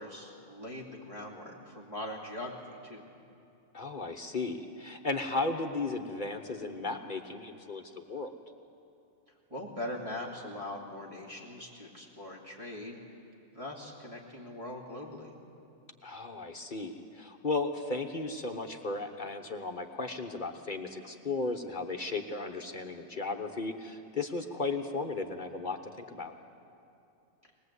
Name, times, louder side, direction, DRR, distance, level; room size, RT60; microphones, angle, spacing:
voice 1, 0.0-3.0 9.3-13.2 13.5-15.3, left 1 dB, 25° right, -5 dB, 2.7 m, -41 dB
voice 2, 3.7-8.3 16.0-26.3, left 3 dB, 40° left, 5 dB, 1.2 m, -35 dB
22.0 x 20.0 x 8.2 m, 2.7 s
omnidirectional pair, 1.4 m